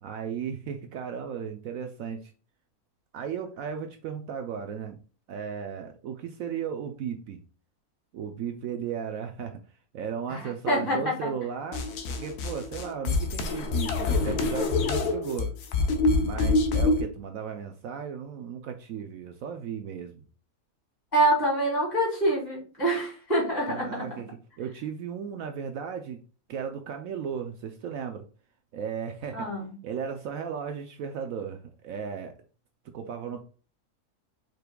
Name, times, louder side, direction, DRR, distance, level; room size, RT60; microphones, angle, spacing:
voice 1, 0.0-2.3 3.1-5.0 5.3-7.4 8.1-9.6 9.9-15.5 16.2-20.2 23.7-24.3 24.6-26.2 26.5-28.3 28.7-29.5 29.8-32.3 32.9-33.4, right 7 dB, 70° right, 6 dB, 0.9 m, -35 dB
voice 2, 10.3-11.3 21.1-24.0 29.3-29.7, right 1 dB, 25° left, -4 dB, 2.6 m, -26 dB
sound 1, 11.7-17.1, left 3 dB, 80° left, 1.3 m, -26 dB
5.0 x 4.5 x 2.2 m, 0.37 s
omnidirectional pair, 1.6 m